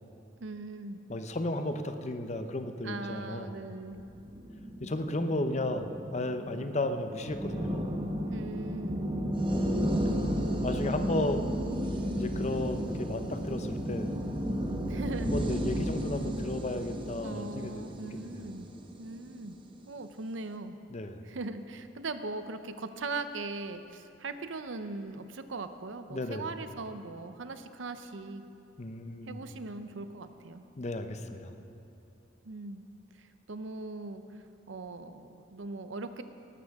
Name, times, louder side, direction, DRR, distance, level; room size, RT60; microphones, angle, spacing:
voice 1, 0.4-1.0 2.8-4.0 8.2-9.0 14.9-15.4 17.2-18.7 19.0-19.6 19.9-20.8 21.2-28.4 29.3-30.6 32.4-32.9 33.2-34.2 34.7-36.2, right 3 dB, 75° right, 10 dB, 0.7 m, -40 dB
voice 2, 1.1-3.6 4.8-7.9 9.1-9.5 10.6-11.5 12.2-14.1 15.2-18.4 20.9-21.2 26.1-26.5 28.8-29.4 30.8-31.6, left 1 dB, 35° left, 7 dB, 0.7 m, -34 dB
sound 1, 4.0-19.4, equal, 25° right, 0.9 m, -33 dB
18.5 x 13.0 x 3.6 m, 2.9 s
head